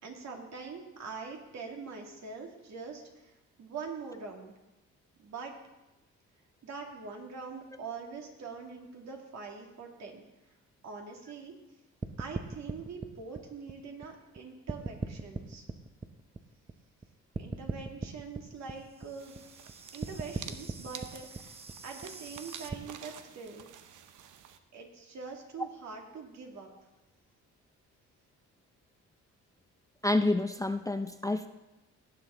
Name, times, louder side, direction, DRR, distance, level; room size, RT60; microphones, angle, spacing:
voice 1, 0.0-3.3 3.6-4.5 5.2-5.5 6.6-10.3 10.8-11.5 12.2-15.6 17.4-19.3 19.9-21.6 21.8-23.7 24.7-26.7, right 5 dB, 60° right, 1 dB, 2.4 m, -43 dB
sound 1, 12.0-14.4 14.7-17.0 17.3-22.7, right 3 dB, 20° right, 0.7 m, -40 dB
sound 2, 19.2-24.6, right 9 dB, 80° right, 0.8 m, -50 dB
voice 2, 30.0-31.5, left 2 dB, 10° left, 8 dB, 0.5 m, -28 dB
17.5 x 7.8 x 3.8 m, 1.0 s
cardioid pair, 90°, 30 cm